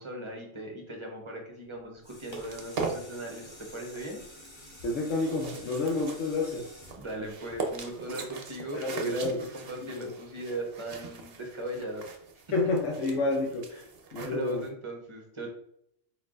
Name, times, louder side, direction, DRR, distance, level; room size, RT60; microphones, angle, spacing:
voice 1, 0.0-4.2 7.0-12.1 12.3-12.4 13.7-13.8 14.2-15.5, right 1 dB, 25° right, 0 dB, 0.9 m, -39 dB
sound 1, 1.7-8.1 8.6-8.7, equal, 25° left, 1.1 m, -49 dB
sound 2, 2.5-14.7, right 4 dB, 60° right, 0.9 m, -40 dB
voice 2, 4.8-6.7 8.7-9.4 9.8-10.1 12.5-13.7 14.1-14.6, left 2 dB, 85° left, 0 dB, 1.1 m, -29 dB
4.4 x 4.3 x 2.4 m, 0.72 s
omnidirectional pair, 1.2 m